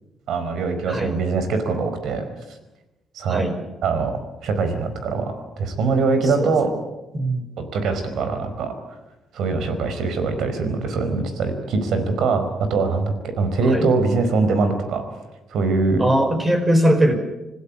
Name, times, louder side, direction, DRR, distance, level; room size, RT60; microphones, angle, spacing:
voice 1, 0.3-2.2 3.1-3.4 3.8-4.1 4.4-6.7 7.7-8.7 9.3-15.0 15.5-16.0, right 4 dB, 75° right, 9 dB, 4.8 m, -22 dB
voice 2, 6.2-6.7 7.1-7.4 13.7-13.9 16.0-17.1, right 1 dB, 25° right, 7 dB, 5.5 m, -20 dB
26.5 x 16.0 x 9.5 m, 1.0 s
cardioid pair, 90°, 0 cm